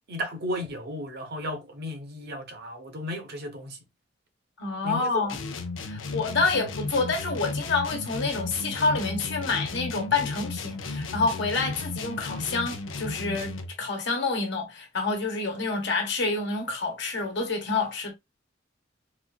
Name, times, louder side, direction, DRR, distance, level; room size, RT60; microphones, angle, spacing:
voice 1, 0.1-3.8 4.8-5.4, equal, 55° right, 0.8 m, -34 dB
voice 2, 4.6-5.4 5.8-18.1, left 3 dB, 65° left, 1.1 m, -28 dB
sound 1, 5.3-13.8, left 3 dB, 85° left, 0.5 m, -34 dB
4.1 x 2.4 x 2.3 m
head